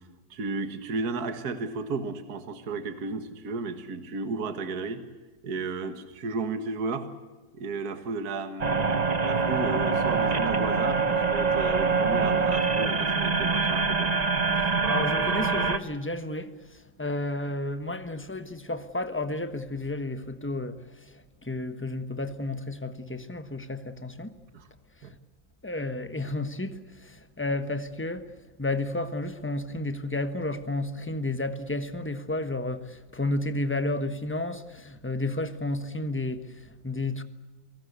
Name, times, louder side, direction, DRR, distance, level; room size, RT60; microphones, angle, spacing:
voice 1, 0.3-5.0 5.4-7.1 7.5-14.1 24.5-24.7 25.0-25.1, right 4 dB, 55° right, 2.0 m, -33 dB
sound 1, 8.6-15.8, right 4 dB, 30° right, 0.8 m, -25 dB
voice 2, 14.9-16.5 17.0-21.1 21.4-24.3 25.6-28.3 28.6-37.2, left 2 dB, 10° left, 1.0 m, -32 dB
28.5 x 19.0 x 8.1 m
omnidirectional pair, 2.0 m